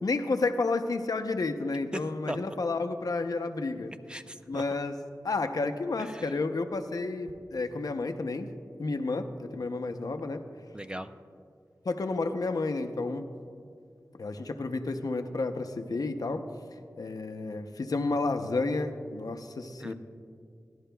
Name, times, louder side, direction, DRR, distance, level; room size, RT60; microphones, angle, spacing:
voice 1, 0.0-3.9 4.5-4.9 5.2-8.5 8.8-10.4 11.8-13.2 14.2-16.4 17.0-19.9, left 3 dB, 70° left, 7 dB, 0.6 m, -31 dB
voice 2, 1.9-2.5 4.1-4.8 6.0-6.3 10.7-11.1 19.8-19.9, right 1 dB, 15° right, 9 dB, 0.4 m, -38 dB
17.0 x 11.0 x 2.2 m, 2.3 s
wide cardioid pair, 65°, 7 cm